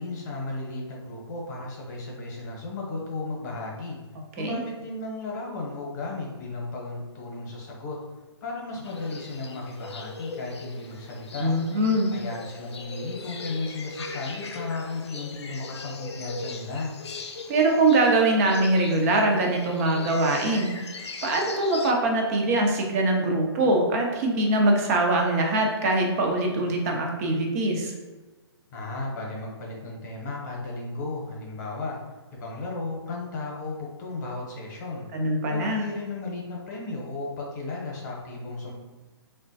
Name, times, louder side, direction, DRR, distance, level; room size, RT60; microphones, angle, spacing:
voice 1, 0.0-4.0 4.4-8.0 8.4-11.5 12.1-16.9 28.7-32.0 32.3-35.1 35.5-38.7, left 3 dB, 40° left, -2 dB, 0.9 m, -34 dB
sound 1, 8.8-21.9, left 3 dB, 80° left, 0.4 m, -40 dB
voice 2, 11.4-12.1 17.5-20.7 21.2-27.9 35.1-35.8, right 2 dB, 35° right, 1 dB, 0.6 m, -23 dB
3.6 x 2.2 x 2.6 m, 1.2 s
hypercardioid pair, 135°, 14 cm